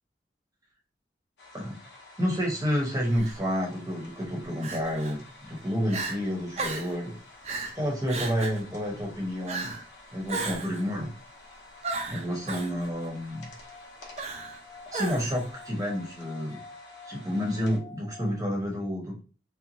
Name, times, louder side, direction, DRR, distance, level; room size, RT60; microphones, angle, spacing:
sound 1, 1.4-17.8, left 2 dB, 80° left, 0.8 m, -51 dB
voice 1, 2.2-7.2 7.7-9.8 10.1-11.1 12.1-13.5 14.9-16.6 17.1-19.2, equal, 20° right, -1 dB, 0.8 m, -30 dB
Crying sobbing, 3.1-3.4 4.6-5.1 5.6-5.7 5.9-6.2 6.6-7.0 7.4-7.8 8.1-8.6 9.5-9.8 10.3-10.8 11.8-12.7 14.2-14.6 14.9-15.4, right 3 dB, 35° right, 0.4 m, -34 dB
sound 2, 9.9-18.3, left 3 dB, 40° left, 0.8 m, -51 dB
2.9 x 2.2 x 2.6 m, 0.37 s
head